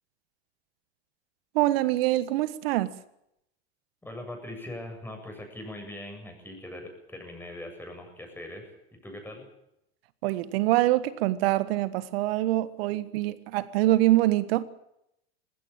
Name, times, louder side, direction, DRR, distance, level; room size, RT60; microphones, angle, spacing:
voice 1, 1.5-2.9 10.2-14.6, right 16 dB, 65° right, 1.5 m, -24 dB
voice 2, 4.0-8.7 9.0-9.4, left 1 dB, 5° left, 8.0 m, -41 dB
20.0 x 16.5 x 8.9 m
hypercardioid pair, 110°, 32 cm